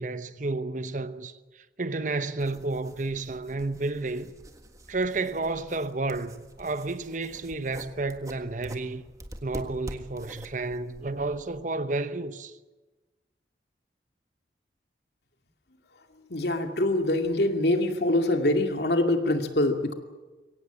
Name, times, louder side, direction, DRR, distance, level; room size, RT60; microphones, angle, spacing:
voice 1, 0.0-4.3 4.9-9.0 9.4-12.5, right 3 dB, 45° right, 0.9 m, -31 dB
sound 1, 2.4-11.6, right 1 dB, 20° right, 1.6 m, -46 dB
voice 2, 16.3-19.9, left 1 dB, 65° left, 2.3 m, -24 dB
23.0 x 17.5 x 8.9 m
head